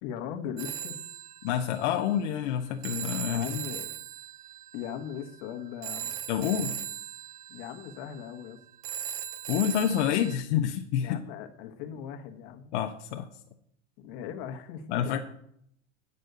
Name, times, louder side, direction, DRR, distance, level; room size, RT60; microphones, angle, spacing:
voice 1, 0.0-1.0 1.9-2.0 3.3-3.9 4.7-6.2 7.5-8.6 11.0-12.7 14.0-15.2, left 8 dB, 60° left, 6 dB, 1.2 m, -39 dB
Telephone, 0.6-10.4, right 10 dB, 55° right, 0.9 m, -39 dB
voice 2, 1.4-3.5 6.3-6.7 9.5-11.2 12.7-13.3 14.9-15.2, left 9 dB, 80° left, 5 dB, 0.8 m, -28 dB
9.4 x 5.4 x 6.6 m, 0.72 s
supercardioid pair, 140°, 34 cm